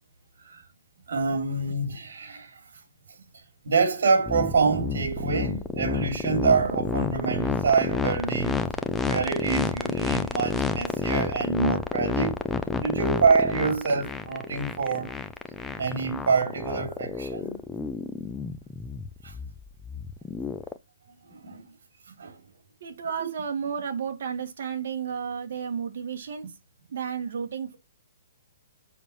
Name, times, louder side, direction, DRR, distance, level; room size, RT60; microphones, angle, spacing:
voice 1, 1.1-2.6 3.6-8.6 9.0-12.4 12.8-15.1 15.8-17.6 19.2-19.4 21.2-21.6 22.2-22.4 23.1-23.3, right 4 dB, 65° right, 3.4 m, -26 dB
sound 1, 4.3-20.8, left 4 dB, 5° left, 0.4 m, -29 dB
voice 2, 22.8-26.5 26.9-27.8, right 7 dB, 50° right, 2.1 m, -32 dB
7.4 x 5.5 x 4.6 m
hypercardioid pair, 170°, 0 cm